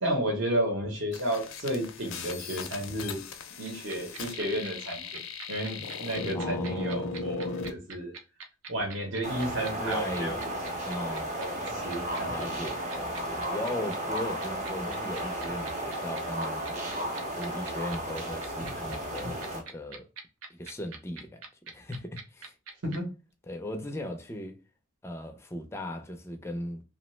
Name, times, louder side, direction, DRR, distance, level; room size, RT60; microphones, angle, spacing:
voice 1, 0.0-3.2 3.6-5.0 5.5-8.1 8.7-10.5 11.0-12.6 22.8-23.1, right 1 dB, 60° right, 0.9 m, -32 dB
sound 1, 1.1-7.7, left 4 dB, 75° left, 0.4 m, -38 dB
sound 2, 3.6-23.0, right 5 dB, 90° right, 0.5 m, -43 dB
voice 2, 6.3-7.2 9.7-10.3 10.8-11.3 12.3-16.7 17.4-20.1 20.5-22.5 23.5-24.5 25.0-26.8, left 1 dB, 10° left, 0.3 m, -38 dB
sound 3, 9.2-19.6, right 1 dB, 35° right, 0.6 m, -34 dB
2.7 x 2.0 x 3.1 m
head